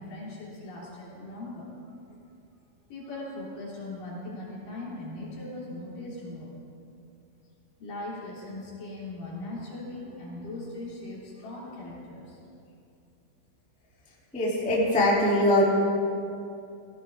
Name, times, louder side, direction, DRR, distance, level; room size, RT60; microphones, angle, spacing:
voice 1, 0.0-1.9 2.9-6.6 7.8-12.4, left 2 dB, 45° left, -7 dB, 4.7 m, -39 dB
voice 2, 14.3-15.6, left 1 dB, 5° left, -7 dB, 0.7 m, -22 dB
17.0 x 16.5 x 3.6 m, 2.5 s
omnidirectional pair, 5.7 m